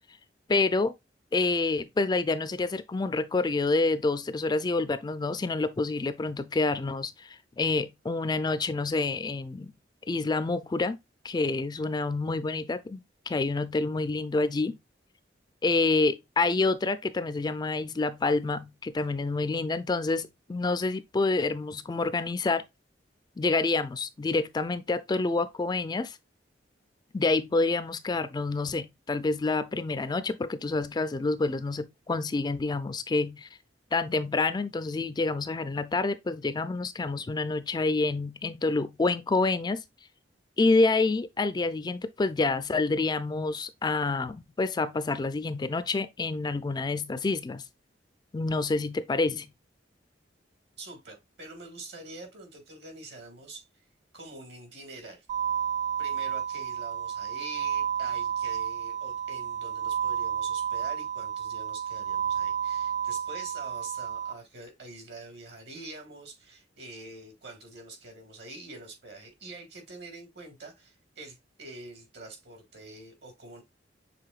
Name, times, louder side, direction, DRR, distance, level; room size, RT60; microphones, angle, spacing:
voice 1, 0.5-0.9 1.3-9.7 10.1-11.0 11.2-14.8 15.6-22.7 23.4-26.2 27.1-33.5 33.9-39.8 40.6-47.6 48.3-49.5, left 3 dB, 25° left, 0.4 m, -28 dB
voice 2, 50.8-53.7 54.1-55.3 56.0-73.6, right 2 dB, 70° right, 2.0 m, -45 dB
sound 1, 55.3-64.3, right 8 dB, 40° right, 0.4 m, -31 dB
6.7 x 3.4 x 2.3 m
head